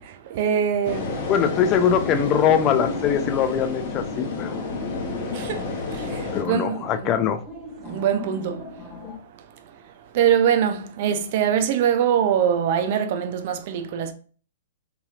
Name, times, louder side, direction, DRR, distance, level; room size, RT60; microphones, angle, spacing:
voice 1, 0.3-1.1 5.3-5.6 5.9-7.1 7.9-8.6 10.1-14.1, right 8 dB, 50° right, 0.4 m, -23 dB
sound 1, 0.8-6.4, left 3 dB, 45° left, 0.7 m, -30 dB
voice 2, 1.3-4.6 6.3-7.4, left 8 dB, 30° left, 0.3 m, -22 dB
sound 2, 2.7-9.2, left 3 dB, 10° left, 0.8 m, -40 dB
2.8 x 2.7 x 2.4 m
figure-of-eight pair, 115°, 0 cm